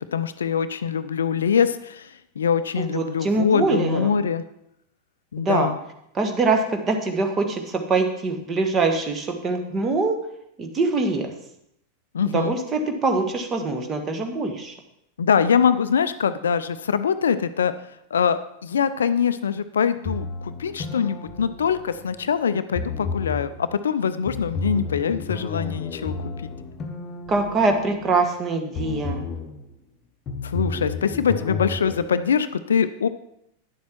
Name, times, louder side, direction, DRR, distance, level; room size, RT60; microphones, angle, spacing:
voice 1, 0.0-4.4 5.3-5.8 12.1-12.5 15.2-17.7 18.1-26.5 30.4-33.1, left 7 dB, 65° left, 13 dB, 0.4 m, -23 dB
voice 2, 2.8-4.1 5.4-5.7 6.1-10.1 10.6-11.3 12.3-14.7 27.3-29.2, right 3 dB, 25° right, 4 dB, 1.4 m, -23 dB
sound 1, 20.0-22.3 22.7-23.6 24.3-28.4 28.7-29.6 30.3-32.0, left 4 dB, 30° left, 1.1 m, -32 dB
9.8 x 7.2 x 4.5 m, 0.77 s
figure-of-eight pair, 90°, 0 cm